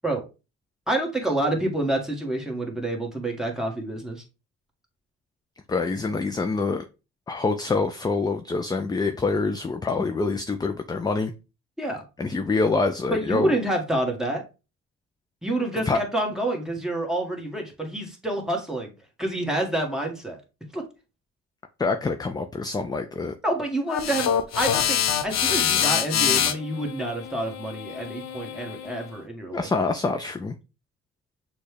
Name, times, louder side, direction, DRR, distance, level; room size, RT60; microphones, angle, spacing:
voice 1, 0.9-4.2 11.8-12.0 13.1-14.4 15.4-18.9 19.2-20.4 20.7-20.8 23.4-29.7, right 1 dB, ahead, 1 dB, 1.4 m, -28 dB
voice 2, 5.7-6.8 7.3-11.3 12.2-13.5 15.9-16.0 21.8-23.3 29.5-30.5, left 3 dB, 15° left, 7 dB, 0.4 m, -25 dB
sound 1, 23.9-29.1, left 9 dB, 60° left, 0.7 m, -25 dB
6.4 x 2.3 x 3.3 m, 0.29 s
cardioid pair, 90°, 30 cm